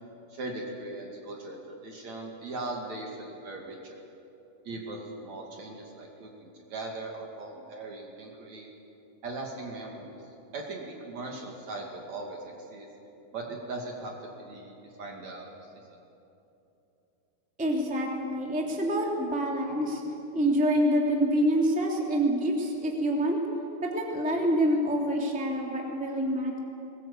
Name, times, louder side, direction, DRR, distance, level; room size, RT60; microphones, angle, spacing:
voice 1, 0.3-4.0 4.6-8.7 9.2-10.2 10.5-12.9 13.3-16.0, right 2 dB, 50° right, 0 dB, 3.3 m, -39 dB
voice 2, 17.6-20.0 20.3-23.4 23.8-26.6, equal, ahead, -1 dB, 2.2 m, -26 dB
21.5 x 20.5 x 8.5 m, 2.9 s
omnidirectional pair, 4.7 m